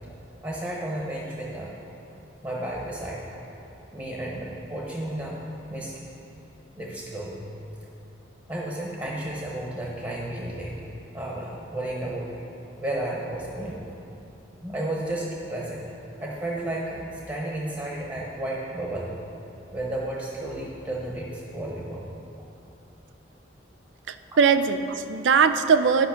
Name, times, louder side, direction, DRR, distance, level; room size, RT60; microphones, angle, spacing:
voice 1, 0.4-1.8 2.4-3.2 3.9-5.4 5.7-5.9 6.8-7.4 8.5-10.7 11.1-12.3 12.8-13.8 14.6-15.8 16.2-19.1 19.7-22.0, right 1 dB, 20° right, -3 dB, 1.0 m, -32 dB
voice 2, 24.1-26.1, right 6 dB, 90° right, 10 dB, 0.4 m, -21 dB
10.5 x 5.6 x 5.8 m, 2.9 s
head